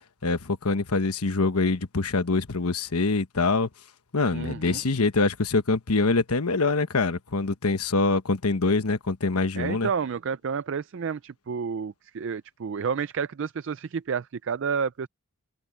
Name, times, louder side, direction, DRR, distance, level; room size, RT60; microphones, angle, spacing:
voice 1, 0.2-3.7 4.1-9.9, left 3 dB, 85° left, 1.2 m, -24 dB
voice 2, 4.3-4.8 9.6-15.1, right 6 dB, 55° right, 0.4 m, -30 dB
head